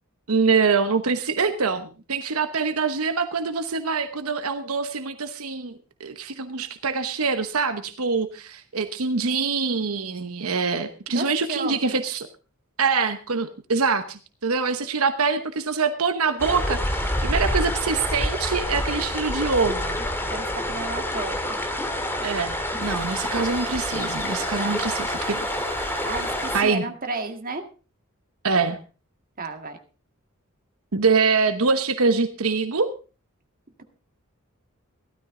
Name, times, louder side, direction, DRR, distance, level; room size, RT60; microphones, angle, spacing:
voice 1, 0.3-12.3 12.8-20.0 22.2-25.5 26.5-26.8 28.4-28.8 30.9-32.9, right 4 dB, 80° right, 9 dB, 1.0 m, -24 dB
voice 2, 11.1-12.0 20.3-21.6 24.5-24.8 26.0-27.6 29.4-29.8, right 3 dB, 40° right, 5 dB, 1.8 m, -33 dB
sound 1, 16.4-26.6, left 1 dB, 10° left, 2.0 m, -27 dB
sound 2, 22.8-26.7, right 2 dB, 20° right, 3.9 m, -38 dB
15.5 x 13.0 x 3.8 m, 0.34 s
head